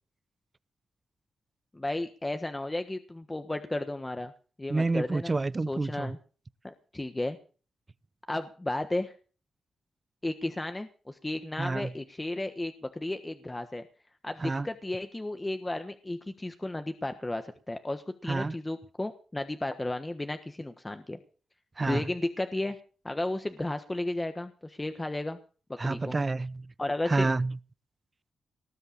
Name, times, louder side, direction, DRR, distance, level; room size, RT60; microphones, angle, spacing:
voice 1, 1.7-4.3 4.6-5.3 5.7-6.2 6.6-7.4 8.3-9.1 10.2-13.8 14.2-21.2 21.9-22.8 23.0-25.4 25.8-26.2 26.8-27.3, left 2 dB, 15° left, 1.3 m, -33 dB
voice 2, 4.7-6.2 11.6-11.9 14.4-14.7 18.3-18.6 21.8-22.1 25.8-26.7 27.1-27.6, right 3 dB, 30° right, 0.6 m, -29 dB
19.0 x 7.9 x 7.2 m
cardioid pair, 100°, 0 cm